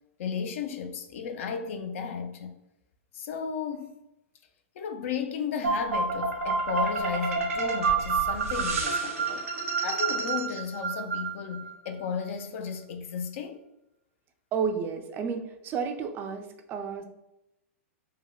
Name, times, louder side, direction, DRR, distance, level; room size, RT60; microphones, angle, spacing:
voice 1, 0.2-2.6 3.1-3.9 4.8-9.5 9.8-13.6, left 6 dB, 65° left, 0.4 m, -34 dB
sound 1, 5.6-11.7, right 4 dB, 85° right, 0.7 m, -28 dB
voice 2, 14.5-17.0, right 6 dB, 30° right, 0.3 m, -31 dB
3.3 x 2.1 x 2.3 m
hypercardioid pair, 125°, 8 cm